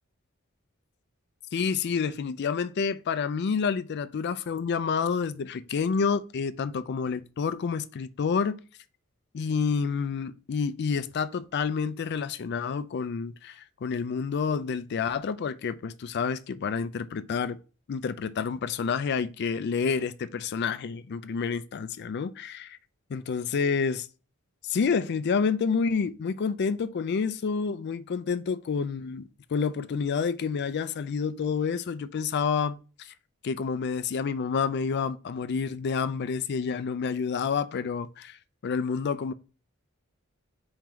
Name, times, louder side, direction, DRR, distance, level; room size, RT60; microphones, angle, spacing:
voice 1, 1.5-8.6 9.3-17.6 17.9-22.8 23.1-24.1 24.7-33.1 33.4-38.3 38.6-39.3, left 5 dB, 55° left, 0.4 m, -29 dB
4.4 x 3.8 x 2.9 m
head